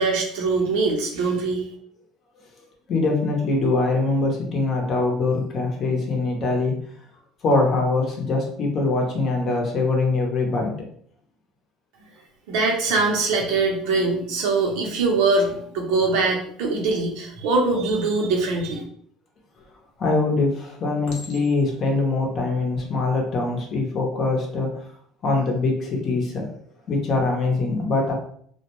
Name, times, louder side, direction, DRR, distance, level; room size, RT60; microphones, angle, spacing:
voice 1, 0.0-1.7 12.5-18.8, right 3 dB, 85° right, 0 dB, 0.7 m, -22 dB
voice 2, 2.9-6.7 7.4-10.7 20.0-24.7 25.2-26.5 26.9-28.1, left 3 dB, 45° left, 1 dB, 0.7 m, -23 dB
Chink clink, 19.6-20.1 21.1-21.9 22.6-22.9, left 2 dB, 85° left, 0.7 m, -42 dB
2.3 x 2.1 x 2.9 m, 0.62 s
cardioid pair, 130°, 0 cm